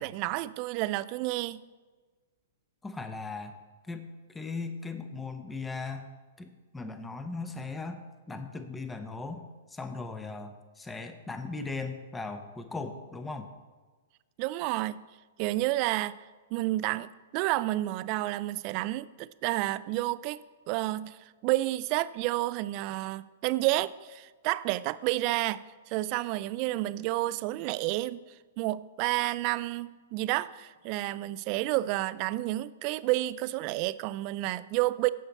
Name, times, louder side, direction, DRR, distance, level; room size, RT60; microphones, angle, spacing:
voice 1, 0.0-1.6 14.4-15.0 15.4-16.2 16.5-28.2 28.6-35.1, right 17 dB, 45° right, 17 dB, 0.3 m, -30 dB
voice 2, 2.8-3.6 3.9-6.1 6.4-8.0 8.3-13.5, left 3 dB, 10° left, 8 dB, 0.8 m, -38 dB
15.5 x 5.7 x 4.1 m, 1.3 s
hypercardioid pair, 125°, 0 cm